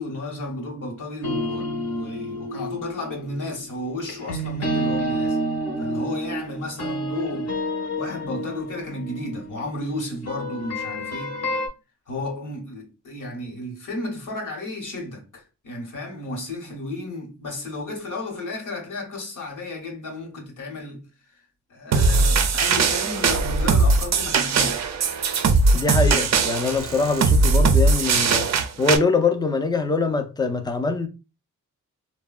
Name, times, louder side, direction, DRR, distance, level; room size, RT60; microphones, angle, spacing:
voice 1, 0.0-5.4 5.8-7.5 8.0-11.4 12.1-21.0 21.7-24.9, left 2 dB, 75° left, 1.0 m, -33 dB
sound 1, 1.2-11.7, right 1 dB, 55° left, 0.8 m, -30 dB
sound 2, 21.9-29.0, right 3 dB, 60° right, 0.4 m, -20 dB
voice 2, 25.7-31.1, left 3 dB, 15° left, 0.4 m, -23 dB
3.2 x 2.1 x 2.3 m
cardioid pair, 85°, 32 cm